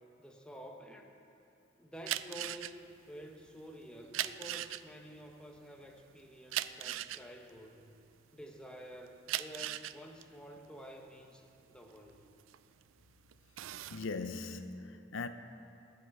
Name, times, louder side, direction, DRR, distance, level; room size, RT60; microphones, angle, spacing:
voice 1, 0.2-1.1 1.8-7.9 8.3-12.3, equal, 5° left, 0.9 m, -50 dB
sound 1, 2.0-8.6 9.1-12.9 13.3-14.0, right 13 dB, 85° right, 0.4 m, -39 dB
voice 2, 13.9-15.3, left 4 dB, 80° left, 0.5 m, -39 dB
20.0 x 7.9 x 4.7 m
head